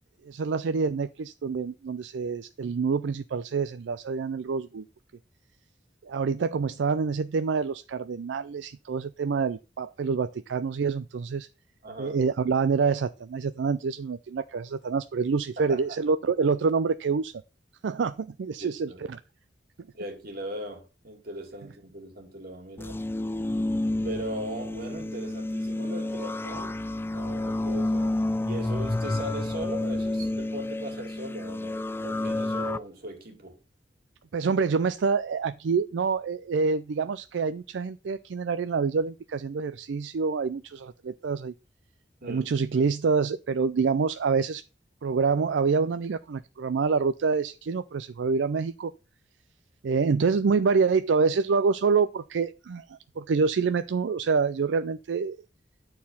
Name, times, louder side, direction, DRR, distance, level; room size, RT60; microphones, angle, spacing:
voice 1, 0.3-4.9 6.0-11.5 12.0-17.3 17.8-19.2 34.3-41.5 42.3-44.6 45.0-48.9 49.8-55.4, right 5 dB, 80° right, 0.4 m, -26 dB
voice 2, 11.8-12.2 15.6-16.0 18.6-19.0 19.9-23.0 24.0-26.9 27.1-33.6 42.2-42.5, right 1 dB, 55° right, 2.6 m, -39 dB
sound 1, 22.8-32.8, left 2 dB, 15° left, 0.3 m, -30 dB
9.4 x 4.5 x 5.5 m
head